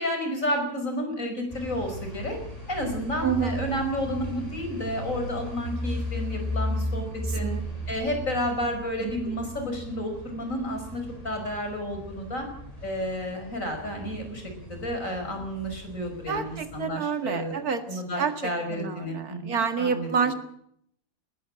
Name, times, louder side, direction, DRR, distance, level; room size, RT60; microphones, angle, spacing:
voice 1, 0.0-2.4 2.7-7.0 7.3-7.5 7.9-12.5 12.8-17.6 17.9-20.3, equal, 55° left, 5 dB, 5.9 m, -31 dB
sound 1, 1.5-16.8, equal, 25° left, 8.2 m, -36 dB
voice 2, 3.2-3.6 7.3-7.6 9.0-9.1 16.3-20.3, right 6 dB, 70° right, 8 dB, 2.4 m, -29 dB
20.0 x 15.0 x 8.8 m, 0.69 s
omnidirectional pair, 1.6 m